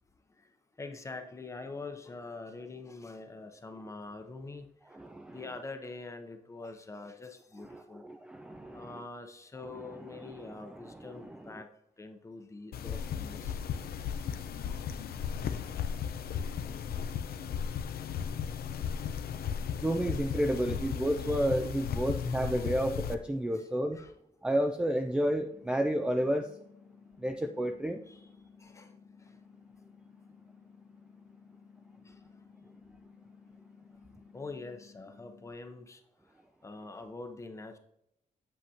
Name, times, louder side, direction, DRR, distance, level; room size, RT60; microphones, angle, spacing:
voice 1, 0.8-4.7 5.3-8.0 8.7-11.7 12.0-13.6 14.7-14.8 20.7-20.8 21.3-21.5 22.0-22.2 22.6-22.7 23.5-23.6 23.9-24.2 28.1-28.3 28.6-28.9 29.2-29.3 32.1-32.2 34.3-36.0 36.6-37.8, left 3 dB, 20° left, 6 dB, 0.7 m, -44 dB
voice 2, 4.9-5.5 7.6-9.0 9.7-11.6 19.8-24.0 24.4-26.5 27.2-28.0, right 1 dB, 5° right, 6 dB, 0.3 m, -31 dB
sound 1, 12.7-23.2, left 7 dB, 85° left, 0.6 m, -35 dB
sound 2, 25.5-35.5, left 5 dB, 50° left, 1.1 m, -57 dB
7.7 x 7.7 x 2.8 m, 0.80 s
wide cardioid pair, 170°, 15 cm